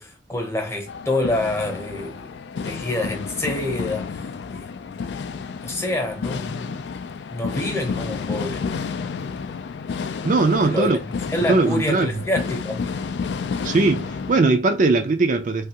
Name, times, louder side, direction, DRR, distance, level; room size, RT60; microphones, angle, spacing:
voice 1, 0.0-2.3 2.6-4.7 5.6-6.9 7.3-8.7 10.6-12.9, left 1 dB, 15° left, 0.8 m, -27 dB
sound 1, 0.9-14.4, left 5 dB, 70° left, 0.3 m, -31 dB
voice 2, 10.2-11.0 11.5-12.1 13.6-15.7, right 3 dB, 45° right, 0.4 m, -19 dB
3.4 x 2.4 x 2.8 m
head